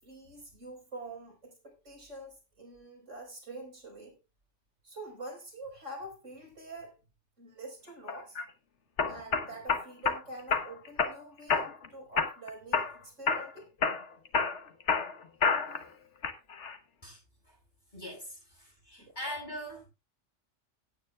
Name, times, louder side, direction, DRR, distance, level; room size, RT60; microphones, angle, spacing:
voice 1, 0.0-4.2 4.8-7.0 7.4-8.4 9.0-13.7 19.0-19.2, right 2 dB, 90° right, 5.0 m, -46 dB
sound 1, 8.1-8.5 9.0-10.2 10.5-11.1 11.5-11.9 12.2-13.0 13.3-13.5 13.8-15.8 16.2-16.8, left 5 dB, 70° left, 1.5 m, -29 dB
voice 2, 17.9-19.9, equal, 40° left, 7.8 m, -42 dB
17.0 x 9.3 x 2.3 m
omnidirectional pair, 1.2 m